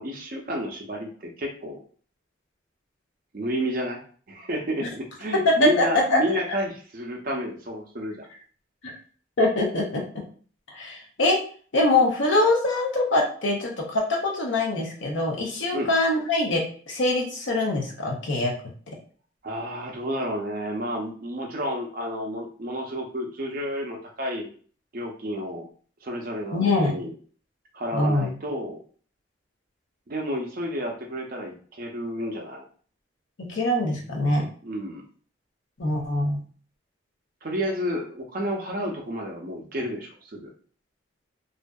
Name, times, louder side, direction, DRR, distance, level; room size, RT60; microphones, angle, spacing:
voice 1, 0.0-1.8 3.3-4.0 4.3-8.3 15.7-15.9 19.4-24.5 24.9-25.7 26.0-27.1 27.7-28.8 30.1-32.6 34.6-35.1 37.4-40.5, equal, 45° right, 1 dB, 0.5 m, -31 dB
voice 2, 5.4-5.8 6.1-6.2 8.8-8.9 9.4-10.0 10.7-11.4 11.7-18.5 26.5-26.9 27.9-28.3 33.4-34.5 35.8-36.4, left 2 dB, 70° left, 0 dB, 0.7 m, -23 dB
2.6 x 2.4 x 2.2 m, 0.43 s
head